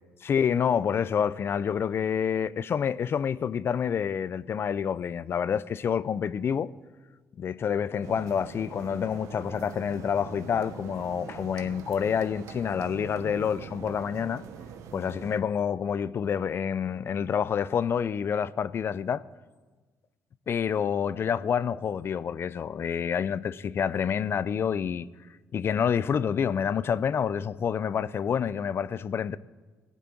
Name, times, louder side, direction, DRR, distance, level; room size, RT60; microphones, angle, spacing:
voice 1, 0.2-6.7 7.4-14.4 14.9-19.2 20.5-25.1 25.5-29.4, left 7 dB, 50° left, 0.5 m, -28 dB
sound 1, 8.0-15.4, right 7 dB, 85° right, 0.9 m, -43 dB
17.0 x 6.1 x 8.5 m
cardioid pair, 90°, 5 cm